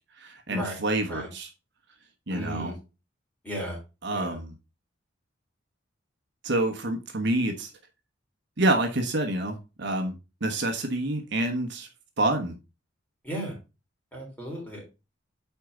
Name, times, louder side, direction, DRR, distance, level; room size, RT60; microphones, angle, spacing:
voice 1, 0.2-1.5 2.3-2.7 4.0-4.6 6.4-7.7 8.6-11.9 12.2-12.6, right 1 dB, 60° right, 4 dB, 1.2 m, -27 dB
voice 2, 2.3-2.8 3.4-3.8 4.1-4.4 13.2-13.5 14.1-14.8, equal, 10° left, -2 dB, 3.8 m, -35 dB
8.4 x 4.7 x 3.7 m, 0.28 s
head